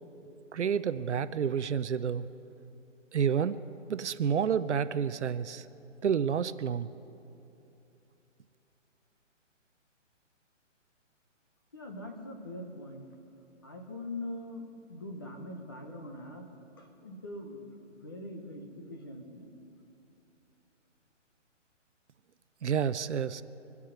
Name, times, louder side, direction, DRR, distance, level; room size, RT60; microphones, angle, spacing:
voice 1, 0.2-2.2 3.1-3.6 3.9-5.6 6.0-6.9 22.6-23.4, right 7 dB, 65° right, 14 dB, 0.6 m, -29 dB
voice 2, 11.7-13.1 13.6-16.5 16.8-19.5, left 1 dB, 20° left, 2 dB, 0.8 m, -42 dB
24.5 x 8.4 x 5.8 m, 2.9 s
hypercardioid pair, 175°, 38 cm